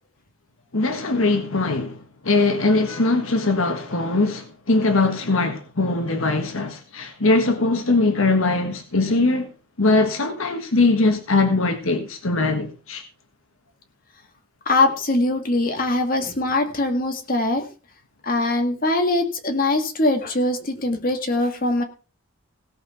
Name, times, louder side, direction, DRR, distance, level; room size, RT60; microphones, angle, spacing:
voice 1, 0.7-2.0 2.2-9.5 9.8-13.0, left 3 dB, 75° left, 1.5 m, -21 dB
voice 2, 14.7-17.7 18.2-21.8, left 2 dB, 40° left, 2.0 m, -22 dB
17.0 x 5.8 x 5.8 m
head